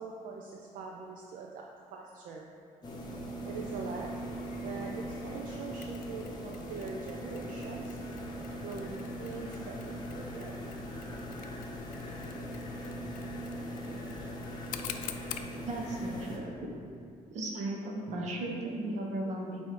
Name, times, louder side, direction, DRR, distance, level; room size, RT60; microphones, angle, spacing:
voice 1, 0.0-2.5 3.5-4.2 4.6-8.0 8.6-10.5 19.2-19.3, right 4 dB, 75° right, 0 dB, 0.5 m, -43 dB
sound 1, 2.8-16.4, equal, 30° left, 0.8 m, -40 dB
Mechanisms, 5.8-15.6, left 10 dB, 80° left, 0.4 m, -48 dB
voice 2, 15.6-16.7 17.3-19.6, right 1 dB, 60° right, -1 dB, 1.0 m, -36 dB
7.7 x 2.7 x 5.0 m, 2.3 s
cardioid pair, 160°, 14 cm